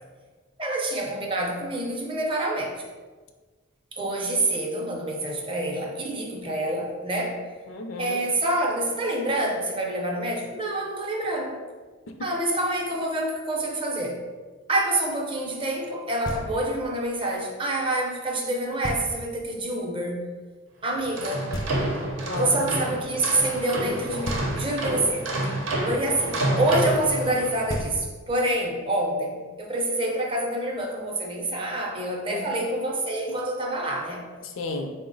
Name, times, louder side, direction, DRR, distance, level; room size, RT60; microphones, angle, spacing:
voice 1, 0.6-2.7 3.9-7.4 8.0-11.6 12.2-14.2 14.7-20.2 20.8-21.5 22.4-25.3 25.8-34.3, right 1 dB, 25° right, -1 dB, 0.6 m, -27 dB
voice 2, 7.7-8.2 12.2-12.3 22.0-22.9 32.3-32.6 34.4-34.9, left 3 dB, 80° left, 5 dB, 0.4 m, -34 dB
Knock, 16.2-16.9 18.8-19.5 21.5-22.3 24.2-25.0 27.3-27.4 27.7-28.5, equal, 20° left, 0.4 m, -34 dB
sound 1, 21.0-27.7, right 2 dB, 85° right, 0.7 m, -29 dB
4.2 x 2.0 x 3.8 m, 1.4 s
head